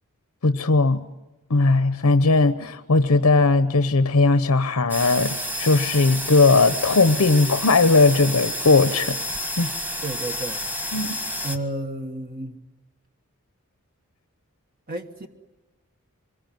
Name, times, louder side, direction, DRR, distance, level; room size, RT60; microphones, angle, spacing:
voice 1, 0.4-1.0 1.5-9.2 9.6-9.7 10.9-11.2, left 3 dB, 85° left, 10 dB, 0.9 m, -18 dB
sound 1, 4.9-11.6, equal, 10° right, 1.7 m, -30 dB
voice 2, 10.0-10.6 11.4-12.6 14.9-15.3, right 2 dB, 40° right, 5 dB, 1.4 m, -31 dB
25.5 x 22.0 x 9.3 m, 1.1 s
head